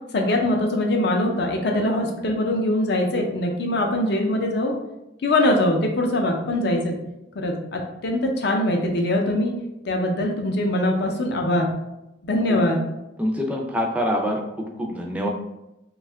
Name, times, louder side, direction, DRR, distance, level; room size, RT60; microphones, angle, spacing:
voice 1, 0.1-4.7 5.2-7.0 7.3-9.5 9.8-11.7 12.2-12.8, left 1 dB, 60° left, 2 dB, 0.5 m, -22 dB
voice 2, 13.2-15.3, equal, 5° right, 1 dB, 0.3 m, -25 dB
2.7 x 2.3 x 3.3 m, 0.93 s
head